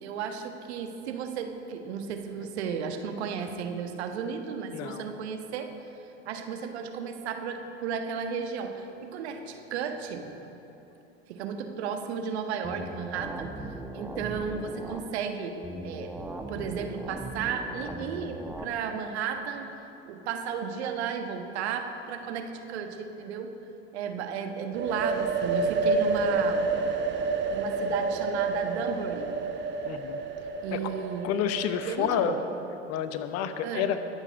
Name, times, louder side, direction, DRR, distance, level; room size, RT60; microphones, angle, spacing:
voice 1, 0.0-5.7 6.2-10.3 11.3-15.5 15.8-16.1 16.5-19.7 20.0-23.5 23.9-26.7 27.5-29.3 30.6-31.3 31.8-32.4 33.6-34.0, right 6 dB, 65° right, 5 dB, 1.3 m, -34 dB
voice 2, 4.7-5.1 29.8-30.2 30.7-30.9 31.2-32.4 32.9-34.0, left 9 dB, 45° left, 10 dB, 1.0 m, -29 dB
sound 1, 12.6-15.0 15.6-18.6, right 1 dB, 5° right, 1.1 m, -38 dB
sound 2, 24.7-32.4, right 3 dB, 30° right, 1.3 m, -29 dB
21.0 x 7.1 x 5.2 m, 2.9 s
hypercardioid pair, 80°, 35 cm